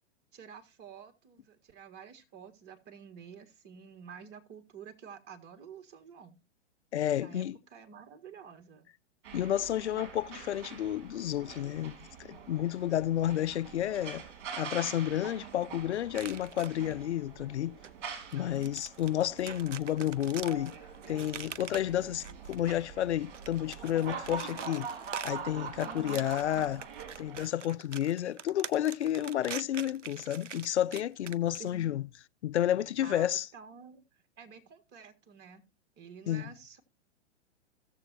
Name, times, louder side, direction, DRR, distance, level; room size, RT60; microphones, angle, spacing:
voice 1, 0.3-6.4 7.2-8.9 18.4-18.8 25.8-26.2 31.6-32.0 33.0-35.6 36.0-36.8, right 6 dB, 30° right, 1.8 m, -50 dB
voice 2, 6.9-7.6 9.3-14.2 14.6-17.7 18.3-20.7 21.1-24.9 25.2-26.8 27.2-32.0 32.4-33.5 36.3-36.4, left 12 dB, 70° left, 0.5 m, -31 dB
sound 1, 9.2-27.4, right 6 dB, 50° right, 3.6 m, -44 dB
sound 2, 16.1-16.9 17.8-17.9 18.3-22.8 23.2-31.7, right 7 dB, 90° right, 0.6 m, -44 dB
16.5 x 7.1 x 2.7 m
figure-of-eight pair, 110°, 35 cm